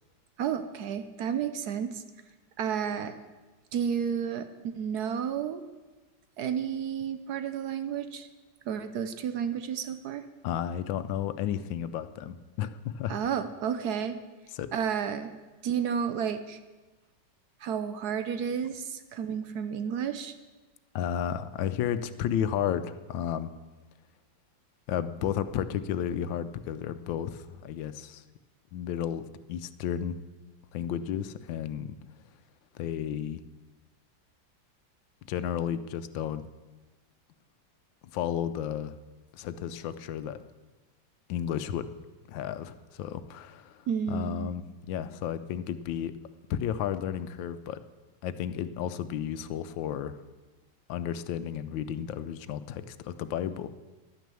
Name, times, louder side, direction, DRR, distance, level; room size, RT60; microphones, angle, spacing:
voice 1, 0.4-2.0 2.6-3.1 3.7-5.6 6.4-8.3 8.7-10.2 13.1-14.2 14.7-15.3 15.6-16.6 17.6-20.3 43.9-44.5, right 8 dB, 70° right, 10 dB, 1.1 m, -31 dB
voice 2, 10.4-13.2 14.5-14.7 20.9-23.5 24.9-28.2 28.7-30.2 30.7-32.0 32.7-33.4 35.3-36.5 38.1-39.0 39.3-40.4 41.3-41.9 42.3-46.1 46.5-47.8 48.2-50.2 50.9-53.7, left 9 dB, 90° left, 12 dB, 1.4 m, -33 dB
11.5 x 9.3 x 6.8 m, 1.2 s
omnidirectional pair, 2.0 m